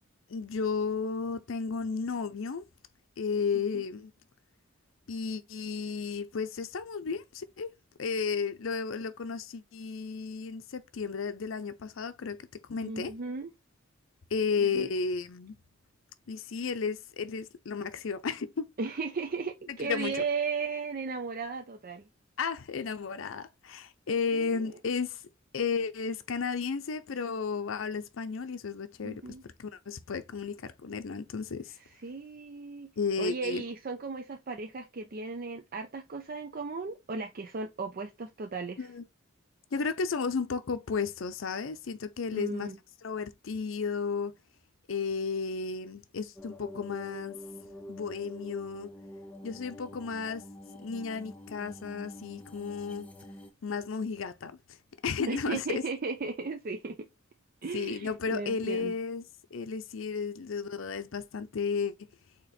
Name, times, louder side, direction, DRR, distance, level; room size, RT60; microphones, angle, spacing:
voice 1, 0.3-2.6 3.2-4.1 5.1-7.7 8.0-13.1 14.3-15.6 16.3-18.7 19.7-20.2 22.4-25.2 25.5-29.3 29.6-31.8 33.0-33.6 38.8-39.0 39.7-42.7 43.0-44.3 44.9-47.4 47.9-48.9 49.4-50.4 50.8-53.1 53.6-54.8 55.0-55.8 57.7-59.2 59.5-61.9, left 5 dB, 70° left, 0.5 m, -33 dB
voice 2, 12.8-13.5 14.6-14.9 18.8-22.1 24.3-24.7 29.0-29.4 32.0-32.9 33.2-38.9 42.3-42.8 55.3-57.1 57.6-58.9, right 4 dB, 45° right, 0.5 m, -36 dB
sound 1, 46.4-53.5, left 1 dB, 5° left, 0.7 m, -46 dB
4.2 x 2.9 x 4.1 m
head